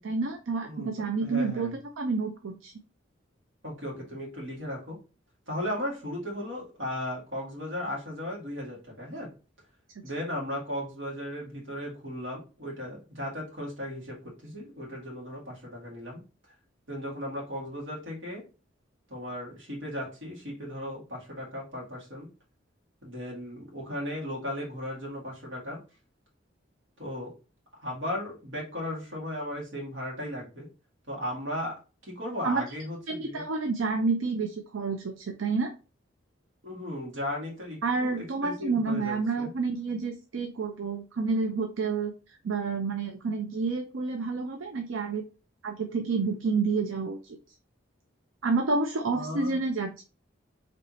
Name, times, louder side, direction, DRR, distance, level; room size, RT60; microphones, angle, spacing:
voice 1, 0.0-2.7 32.4-32.6 33.1-35.7 37.8-42.1 42.4-45.2 45.6-47.4 48.4-50.0, right 4 dB, 85° right, 6 dB, 0.5 m, -29 dB
voice 2, 1.2-1.7 3.6-5.0 5.5-9.3 10.0-16.2 16.9-18.4 19.1-22.3 23.0-25.8 27.0-27.3 27.8-30.7 31.1-31.8 32.0-33.4 36.6-39.5 49.1-49.6, left 1 dB, 70° right, -3 dB, 1.9 m, -36 dB
4.1 x 3.2 x 3.0 m, 0.32 s
head